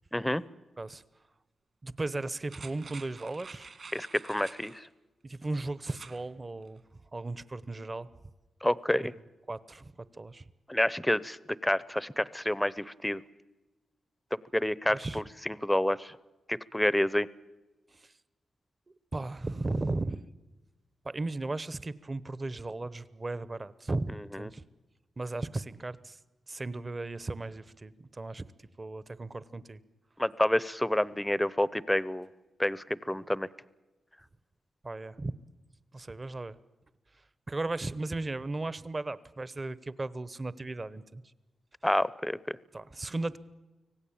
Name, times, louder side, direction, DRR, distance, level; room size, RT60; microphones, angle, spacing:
voice 1, 0.1-0.4 3.9-4.8 8.6-9.1 10.7-11.4 11.6-13.2 14.5-16.1 16.5-17.3 24.4-24.5 30.2-32.3 32.6-33.5 41.8-42.6, left 1 dB, 5° left, 19 dB, 0.7 m, -28 dB
voice 2, 1.8-3.7 5.2-6.8 7.1-8.1 9.5-10.4 14.9-15.2 17.9-18.1 19.1-20.2 21.0-24.6 25.2-26.2 26.5-28.5 28.8-29.8 34.8-35.3 35.9-36.6 37.5-41.2 42.7-43.4, right 2 dB, 30° right, 17 dB, 0.9 m, -36 dB
sound 1, 2.5-4.8 5.8-6.2 6.6-6.7, right 4 dB, 50° right, 2.2 m, -48 dB
25.0 x 17.5 x 8.7 m, 1.1 s
cardioid pair, 90°, 0 cm